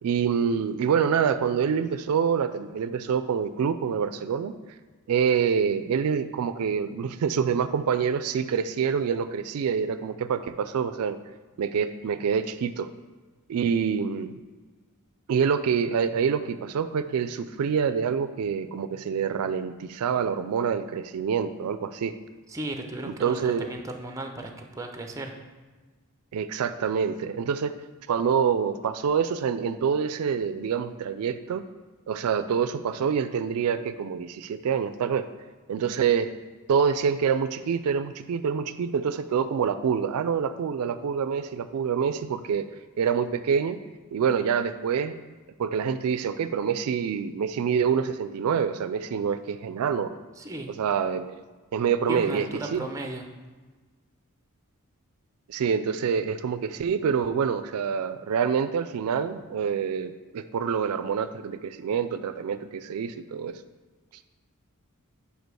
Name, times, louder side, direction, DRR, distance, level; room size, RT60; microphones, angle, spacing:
voice 1, 0.0-4.5 5.1-11.2 11.6-12.9 13.5-14.4 15.3-22.1 23.1-23.7 26.3-27.8 28.1-31.6 32.1-35.3 35.7-36.3 36.7-42.7 43.0-43.8 44.1-45.1 45.6-50.1 50.8-51.3 51.7-52.5 52.7-52.8 55.5-63.5, right 7 dB, 80° right, 12 dB, 0.3 m, -26 dB
voice 2, 22.5-25.3 50.4-50.7 52.1-53.2, right 2 dB, 15° right, 4 dB, 0.6 m, -35 dB
5.2 x 5.0 x 6.2 m, 1.3 s
head